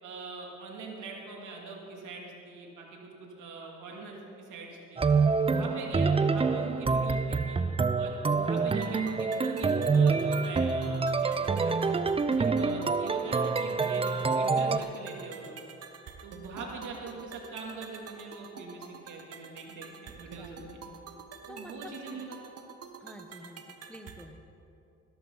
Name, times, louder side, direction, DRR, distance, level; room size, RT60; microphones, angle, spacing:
voice 1, 0.0-5.0 5.4-7.6 8.0-12.0 12.4-15.6 16.2-20.7 21.5-22.6, right 3 dB, 80° right, -1 dB, 2.7 m, -42 dB
sound 1, 5.0-14.8, right 4 dB, 20° right, 0.5 m, -26 dB
sound 2, 8.3-24.3, right 6 dB, 55° right, 1.1 m, -48 dB
voice 2, 20.1-20.6 21.5-21.9 23.0-23.6 23.9-24.4, equal, 5° left, 5 dB, 0.9 m, -48 dB
16.5 x 12.5 x 4.0 m, 2.7 s
cardioid pair, 90°, 30 cm